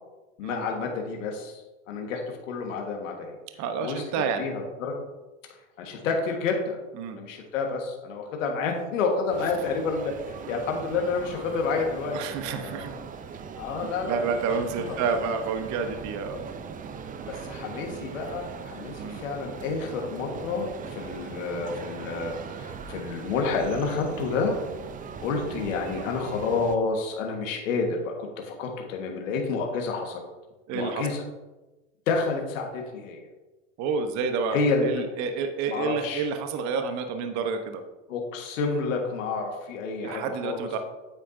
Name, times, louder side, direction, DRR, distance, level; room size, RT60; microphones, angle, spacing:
voice 1, 0.4-3.3 3.8-4.0 4.4-4.9 5.8-6.8 7.1-12.2 12.5-12.9 13.6-14.5 14.8-15.0 17.3-24.6 25.2-30.2 30.7-31.2 32.1-33.3 34.5-35.0 35.7-36.3 38.1-40.7, left 4 dB, 75° left, 1 dB, 1.6 m, -29 dB
voice 2, 3.6-4.4 7.0-7.2 12.1-13.0 14.1-16.4 19.0-19.2 30.7-31.1 33.8-37.8 40.0-40.8, right 5 dB, 45° right, 7 dB, 1.0 m, -29 dB
sound 1, 9.3-26.8, right 6 dB, 20° right, 0.5 m, -40 dB
8.8 x 8.5 x 2.7 m, 1.1 s
hypercardioid pair, 105°, 39 cm